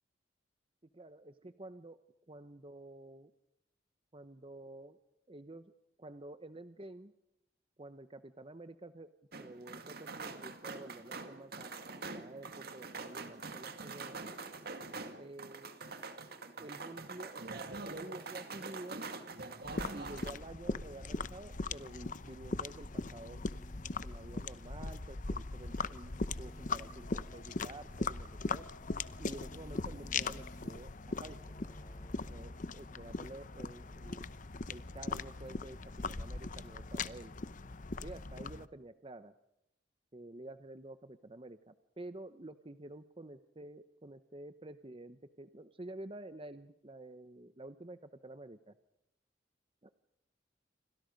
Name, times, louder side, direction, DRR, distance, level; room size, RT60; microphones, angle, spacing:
voice 1, 0.9-2.0 2.3-3.3 4.1-5.0 5.3-5.7 6.0-7.1 7.8-9.1 9.4-14.2 15.2-15.7 16.6-19.0 19.9-23.5 24.0-28.7 29.2-30.9 31.2-31.6 32.3-34.3 34.7-35.8 36.1-37.3 38.0-39.3 40.1-48.0 48.2-48.7, right 2 dB, 30° right, 11 dB, 0.9 m, -50 dB
sound 1, 9.3-20.3, right 3 dB, 55° right, 2.1 m, -44 dB
sound 2, 19.6-38.7, left 3 dB, 45° left, 0.8 m, -40 dB
sound 3, 20.7-33.7 34.0-35.0, left 1 dB, 20° left, 1.6 m, -56 dB
29.0 x 26.0 x 5.3 m, 0.81 s
head